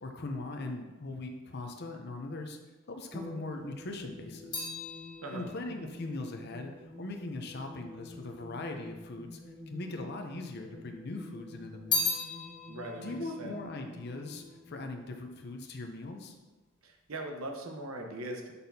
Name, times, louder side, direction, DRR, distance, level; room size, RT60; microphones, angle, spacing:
voice 1, 0.0-2.6 2.9-4.7 5.3-6.7 7.0-9.4 9.7-12.2 13.0-16.4, left 2 dB, 50° left, 4 dB, 0.6 m, -40 dB
sound 1, 3.1-16.0, left 1 dB, 5° left, 0.6 m, -49 dB
sound 2, 3.5-8.0 8.8-9.6 9.8-11.0 11.3-14.8 15.1-15.6, left 4 dB, 20° left, 1.4 m, -38 dB
voice 2, 12.7-13.6 16.8-18.5, right 1 dB, 80° right, 3 dB, 0.9 m, -40 dB
6.9 x 5.9 x 2.7 m, 1.2 s
head